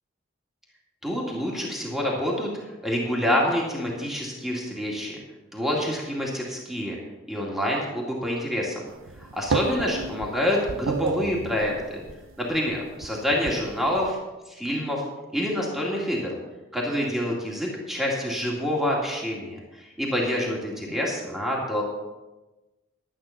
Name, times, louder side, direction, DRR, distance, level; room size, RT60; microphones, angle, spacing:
voice 1, 1.0-2.5 2.8-5.2 5.5-7.0 7.3-8.9 9.2-12.0 12.4-14.2 14.5-15.0 15.3-16.3 16.7-21.8, equal, ahead, -3 dB, 2.2 m, -27 dB
sound 1, 8.9-14.1, right 4 dB, 80° right, 0.6 m, -32 dB
12.0 x 8.7 x 5.8 m, 1.1 s
head